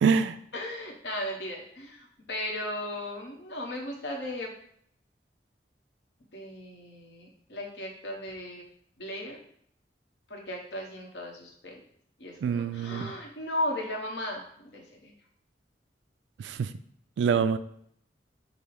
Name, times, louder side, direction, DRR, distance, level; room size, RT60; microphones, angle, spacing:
voice 1, 0.0-0.4 12.4-13.1 16.4-16.7 17.2-17.6, right 6 dB, 90° right, 12 dB, 0.3 m, -25 dB
voice 2, 0.5-4.5 6.3-8.6 9.0-9.4 10.3-11.8 12.2-15.1, left 1 dB, 75° left, 0 dB, 1.0 m, -36 dB
5.4 x 2.0 x 4.6 m, 0.67 s
head